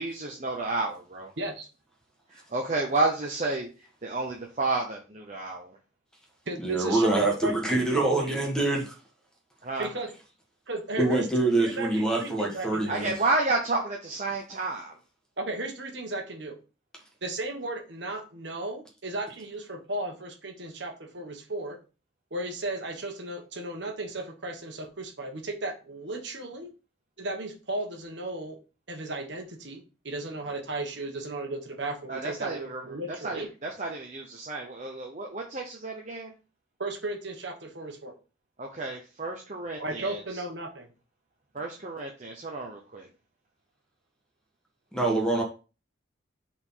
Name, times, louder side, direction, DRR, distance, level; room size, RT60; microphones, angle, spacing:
voice 1, 0.0-1.3 2.3-3.7 4.0-5.8 9.6-9.9 12.9-15.0 32.1-36.3 38.6-40.4 41.5-43.1, right 3 dB, 35° right, 0.9 m, -31 dB
voice 2, 1.4-1.7 6.5-8.3 9.8-10.1 10.7-11.3 11.6-13.0 15.4-16.6 17.2-21.8 22.3-26.7 27.2-28.6 28.9-33.5 36.8-38.1 39.8-40.9, right 2 dB, 60° right, 1.5 m, -35 dB
voice 3, 6.6-8.9 11.0-13.1 44.9-45.4, right 2 dB, 5° left, 1.6 m, -25 dB
5.1 x 4.4 x 5.6 m
head